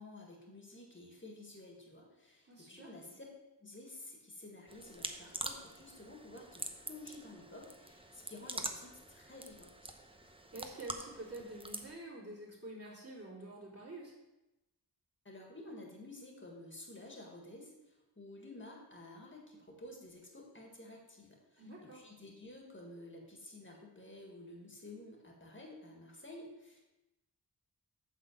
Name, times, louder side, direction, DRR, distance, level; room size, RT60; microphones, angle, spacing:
voice 1, 0.0-3.2 3.6-9.9 15.3-26.8, left 2 dB, 30° left, -1 dB, 1.9 m, -52 dB
voice 2, 2.4-2.9 10.2-14.1 21.6-22.0, right 2 dB, 35° right, -6 dB, 3.6 m, -48 dB
sound 1, 4.7-11.9, right 1 dB, 15° right, 0.8 m, -45 dB
9.0 x 4.1 x 7.2 m, 0.99 s
wide cardioid pair, 60°, 40 cm